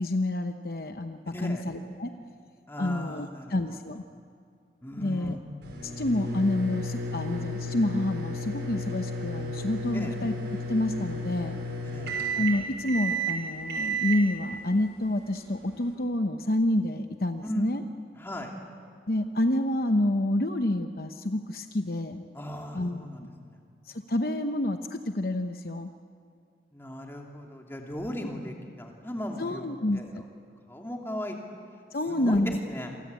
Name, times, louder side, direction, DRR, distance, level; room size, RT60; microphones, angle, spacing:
voice 1, 0.0-2.1 2.8-4.0 5.0-5.4 5.8-10.3 10.7-11.6 12.3-17.8 19.1-22.2 22.7-23.0 23.9-25.9 29.4-30.2 31.9-32.6, left 1 dB, 55° left, 7 dB, 0.9 m, -28 dB
voice 2, 1.3-1.6 2.7-3.8 4.8-5.4 9.9-10.1 11.8-12.2 17.4-17.7 18.2-18.5 22.3-23.6 26.7-29.6 29.9-30.2 30.7-31.4 32.1-32.9, equal, 15° left, 1 dB, 2.8 m, -37 dB
sound 1, 5.6-15.9, right 1 dB, 75° right, 6.0 m, -33 dB
28.0 x 24.5 x 8.3 m, 2.3 s
head